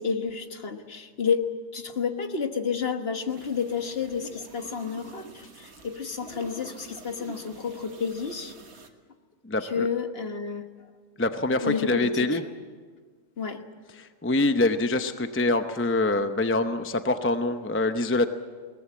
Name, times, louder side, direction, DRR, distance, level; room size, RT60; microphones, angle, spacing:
voice 1, 0.0-8.5 9.6-10.6 11.6-12.4 13.4-13.6, left 6 dB, 50° left, 6 dB, 1.6 m, -30 dB
sound 1, 3.3-8.9, right 2 dB, 60° right, 1.8 m, -47 dB
voice 2, 9.4-9.9 11.2-12.4 14.0-18.2, left 2 dB, 10° left, 8 dB, 0.7 m, -25 dB
22.0 x 18.5 x 8.5 m, 1.5 s
omnidirectional pair, 1.3 m